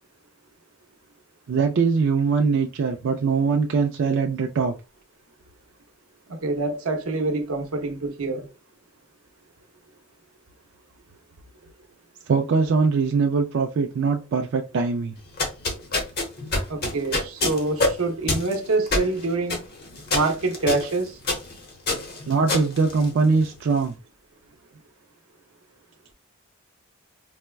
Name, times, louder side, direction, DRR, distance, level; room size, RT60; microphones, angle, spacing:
voice 1, 1.5-4.7 12.3-15.2 22.3-24.0, right 4 dB, 55° right, 0.3 m, -22 dB
voice 2, 6.3-8.5 16.7-19.6 20.1-21.2, right 3 dB, 75° right, 0.7 m, -26 dB
sound 1, 15.2-23.6, left 2 dB, 45° left, 0.9 m, -27 dB
4.2 x 2.1 x 2.3 m
head